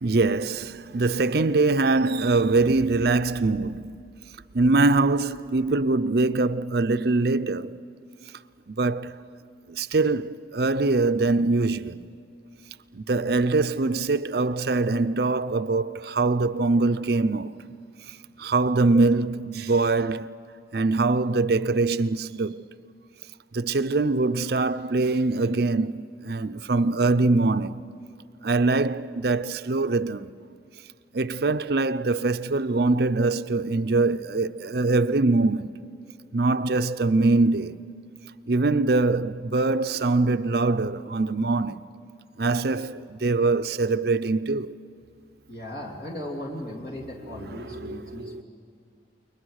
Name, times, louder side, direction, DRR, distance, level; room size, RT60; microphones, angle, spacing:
voice 1, 0.0-3.9 4.5-7.8 8.7-9.2 9.7-12.1 12.9-17.6 18.1-20.4 20.7-22.6 23.5-27.9 28.4-30.4 31.1-35.8 36.3-37.8 38.5-41.9 42.4-44.8 47.4-48.4, right 3 dB, 55° right, 0.6 m, -23 dB
voice 2, 45.5-48.4, left 1 dB, 55° left, 2.9 m, -37 dB
30.0 x 22.0 x 6.4 m
head